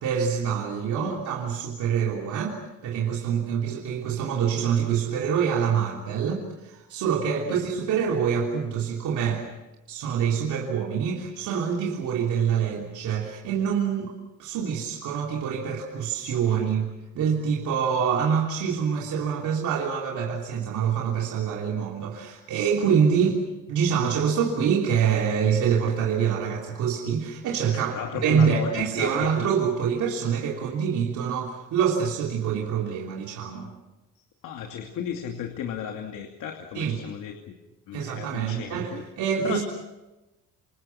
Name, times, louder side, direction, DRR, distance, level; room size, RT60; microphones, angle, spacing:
voice 1, 0.0-2.6 2.8-9.4 9.9-14.1 14.4-23.3 23.7-33.7 36.7-37.0 37.9-38.9 39.2-39.6, right 7 dB, 55° right, -1 dB, 3.4 m, -25 dB
voice 2, 16.3-16.7 27.7-29.3 34.2-37.6 37.9-39.0 39.4-39.6, left 8 dB, 60° left, 3 dB, 2.7 m, -35 dB
28.5 x 27.5 x 5.9 m, 1.0 s
cardioid pair, 160°, 35 cm